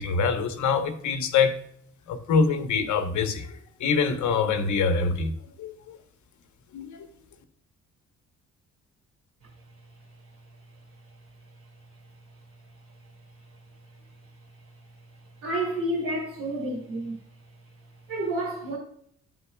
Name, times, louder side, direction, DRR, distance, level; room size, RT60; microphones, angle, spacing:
voice 1, 0.0-1.5 2.1-5.3 5.6-6.0 6.7-7.1, left 5 dB, 70° left, 1.0 m, -25 dB
voice 2, 15.4-17.2 18.1-18.8, right 1 dB, 80° right, 2.5 m, -29 dB
8.7 x 7.4 x 2.2 m
cardioid pair, 90°, 30 cm